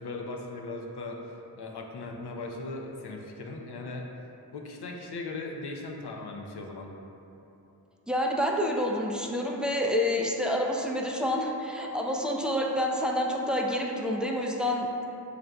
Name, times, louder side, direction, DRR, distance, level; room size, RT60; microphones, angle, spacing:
voice 1, 0.0-4.1 4.5-6.9, left 2 dB, 75° left, 1 dB, 0.5 m, -38 dB
voice 2, 8.1-15.1, left 1 dB, ahead, 0 dB, 0.3 m, -28 dB
6.3 x 2.4 x 2.2 m, 3.0 s
wide cardioid pair, 50°, 40 cm